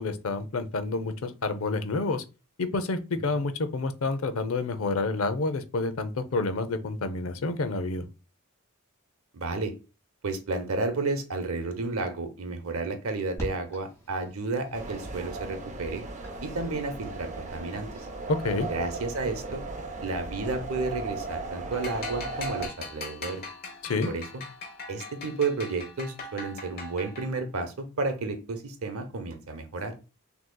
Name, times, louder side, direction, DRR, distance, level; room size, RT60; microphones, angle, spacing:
voice 1, 0.0-2.2 2.6-8.1 18.3-18.7 23.8-24.1, left 3 dB, 70° left, 11 dB, 0.6 m, -29 dB
voice 2, 9.3-9.7 10.2-16.0 16.4-18.1 18.7-19.6 20.0-23.4 24.1-24.2 24.9-29.9, right 3 dB, 70° right, 8 dB, 0.8 m, -32 dB
sound 1, 13.4-19.1, equal, 15° left, 2.1 m, -45 dB
sound 2, 14.7-22.7, right 2 dB, 35° right, 0.6 m, -37 dB
sound 3, 21.7-27.5, left 3 dB, 45° left, 1.1 m, -41 dB
6.3 x 2.9 x 2.3 m, 0.30 s
head